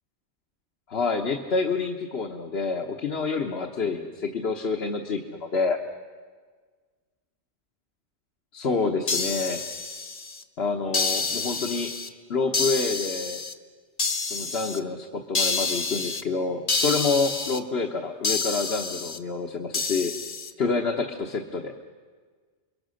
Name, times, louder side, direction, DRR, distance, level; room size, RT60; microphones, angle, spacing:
voice 1, 0.9-5.8 8.5-9.6 10.6-11.9 12.3-13.4 14.2-20.1 20.6-21.8, left 4 dB, 65° left, 2 dB, 1.4 m, -28 dB
sound 1, 9.1-10.4 10.9-12.1 12.5-13.5 14.0-14.8 15.3-16.2 16.7-17.6 18.2-19.2 19.7-20.5, left 4 dB, 35° left, 1.0 m, -28 dB
29.0 x 22.5 x 6.5 m, 1.5 s
omnidirectional pair, 1.1 m